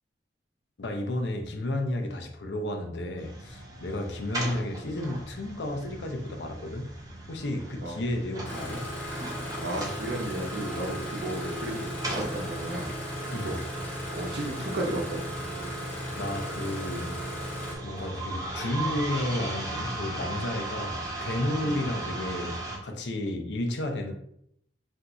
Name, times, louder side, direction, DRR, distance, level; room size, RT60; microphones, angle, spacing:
voice 1, 0.8-6.9 7.3-8.9 13.3-13.5 15.8-17.4 17.8-24.1, left 1 dB, 75° left, 4 dB, 0.5 m, -32 dB
sound 1, 3.2-22.8, right 2 dB, 20° right, 0.6 m, -38 dB
Engine starting, 8.4-17.8, equal, 10° left, 0.8 m, -36 dB
voice 2, 9.6-12.9 13.4-13.6 14.1-15.2 21.6-21.8, right 1 dB, 65° right, 0 dB, 0.8 m, -33 dB
2.6 x 2.3 x 3.8 m, 0.70 s
head